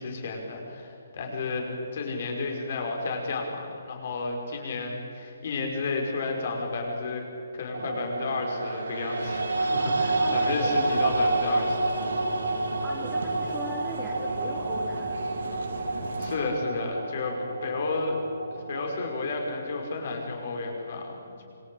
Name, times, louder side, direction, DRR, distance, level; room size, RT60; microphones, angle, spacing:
voice 1, 0.0-7.2 7.5-11.9 16.2-18.2 18.7-21.4, left 3 dB, 40° left, 1 dB, 5.7 m, -32 dB
sound 1, 7.7-20.0, right 2 dB, 90° right, 3.7 m, -29 dB
sound 2, 9.2-16.4, right 3 dB, 70° right, 4.0 m, -40 dB
voice 2, 10.2-11.0 12.8-15.2, equal, 5° right, -2 dB, 1.5 m, -40 dB
26.5 x 24.5 x 8.6 m, 2.6 s
hypercardioid pair, 175°, 0 cm